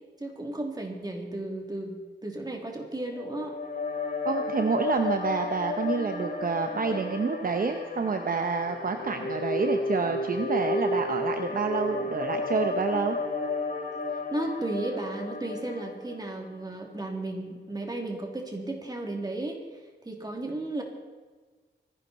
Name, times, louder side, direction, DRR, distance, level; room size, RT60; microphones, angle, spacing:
voice 1, 0.2-3.6 14.3-19.6 20.0-20.8, right 2 dB, 20° right, 1 dB, 2.8 m, -34 dB
sound 1, 3.1-16.4, left 3 dB, 50° left, 2.9 m, -32 dB
voice 2, 4.2-13.2, right 4 dB, 50° right, 6 dB, 0.9 m, -28 dB
24.5 x 11.0 x 4.3 m, 1.4 s
wide cardioid pair, 110°, 19 cm